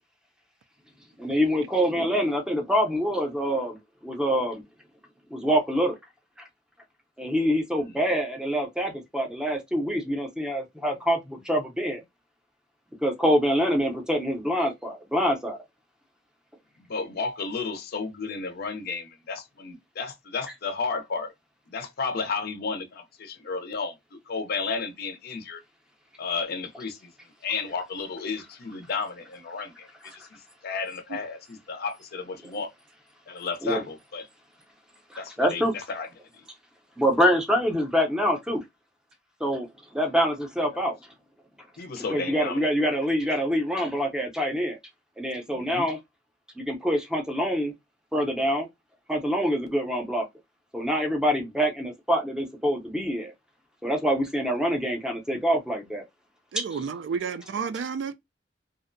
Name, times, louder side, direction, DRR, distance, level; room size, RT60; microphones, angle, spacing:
voice 1, 1.2-3.8 4.0-4.6 5.3-5.9 7.2-12.0 13.0-15.6 33.6-33.8 35.1-35.7 37.0-38.6 39.4-39.7 39.9-40.9 42.1-44.8 45.2-46.0 46.6-47.7 48.1-48.7 49.1-50.2 50.7-53.3 53.8-56.0 56.6-56.7, equal, 5° right, 0.5 m, -25 dB
voice 2, 16.9-21.3 21.7-25.6 26.2-27.1 27.4-32.7 33.3-34.3 35.2-36.1 36.3-36.4 40.2-40.3 40.7-40.8 41.8-42.9 45.5-45.9 57.2-57.3, left 4 dB, 55° left, 0.5 m, -33 dB
voice 3, 56.5-58.1, right 6 dB, 70° right, 0.3 m, -31 dB
2.6 x 2.0 x 2.5 m
head